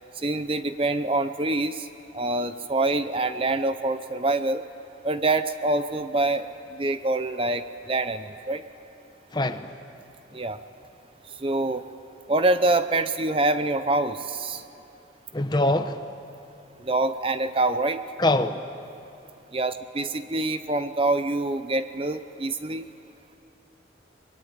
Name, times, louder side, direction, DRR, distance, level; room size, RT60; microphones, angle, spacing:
voice 1, 0.2-1.9 2.1-4.6 5.0-8.6 10.3-10.6 11.4-11.9 12.3-14.6 16.8-18.0 19.5-22.9, right 2 dB, 30° right, 0.7 m, -25 dB
voice 2, 9.3-9.7 15.3-16.0 18.2-18.7, left 1 dB, 20° left, 1.0 m, -24 dB
25.0 x 22.5 x 9.8 m
head